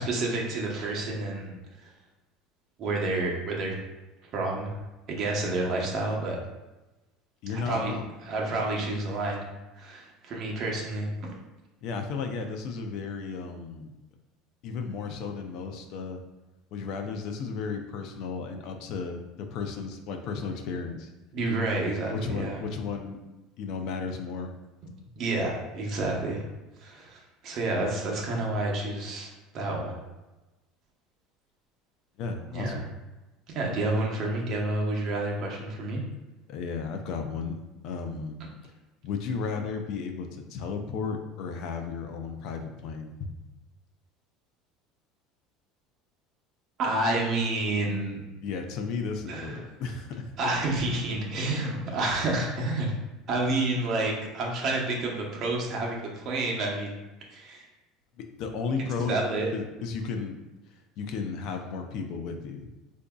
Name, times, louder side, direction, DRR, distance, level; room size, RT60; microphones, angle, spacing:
voice 1, 0.0-1.5 1.8-1.9 2.8-3.8 4.3-4.8 5.1-6.4 7.5-7.9 8.2-9.5 9.8-11.3 21.3-22.6 25.2-26.4 26.8-30.0 32.5-32.8 33.5-36.0 46.8-48.2 49.3-49.6 50.4-52.9 53.3-56.9 57.3-57.6 59.1-59.5, right 2 dB, 45° right, -1 dB, 0.8 m, -29 dB
voice 2, 7.4-8.1 11.8-13.9 14.6-16.2 16.7-21.1 22.1-23.2 23.6-24.5 32.2-32.8 36.5-38.4 39.0-43.3 48.4-50.3 58.2-59.2 59.5-60.4 61.0-62.7, left 5 dB, 55° left, 5 dB, 0.4 m, -34 dB
4.6 x 2.6 x 2.2 m, 1.1 s
cardioid pair, 145°, 0 cm